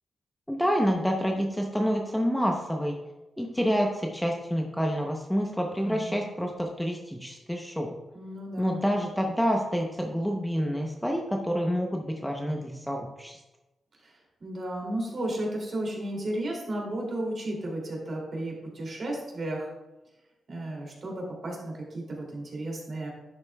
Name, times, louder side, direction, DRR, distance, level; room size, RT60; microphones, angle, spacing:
voice 1, 0.5-3.0 3.4-8.0 8.6-13.4, equal, 5° left, 1 dB, 0.8 m, -28 dB
voice 2, 5.8-6.2 8.1-9.0 14.0-14.1 14.4-19.7 20.5-23.1, right 1 dB, 45° right, -1 dB, 2.7 m, -34 dB
11.0 x 8.6 x 2.3 m, 1.0 s
cardioid pair, 100°, 0 cm